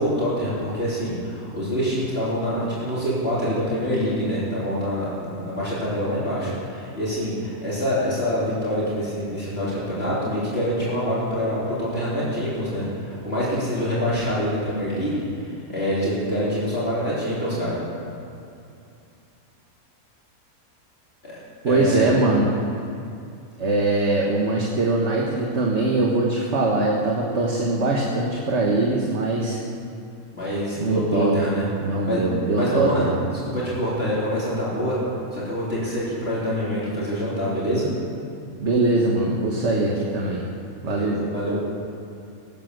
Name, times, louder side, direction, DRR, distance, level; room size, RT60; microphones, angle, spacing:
voice 1, 0.0-15.2 15.7-17.8 21.2-21.3 21.7-22.1 30.3-31.6 32.1-32.2 32.6-35.0 35.3-37.9 40.8-41.6, equal, 45° left, -9 dB, 3.6 m, -25 dB
voice 2, 21.6-22.5 23.6-29.6 30.8-31.4 31.8-33.1 38.6-40.5 40.8-41.2, right 2 dB, 55° right, -2 dB, 1.7 m, -22 dB
17.0 x 9.2 x 6.6 m, 2.6 s
omnidirectional pair, 1.5 m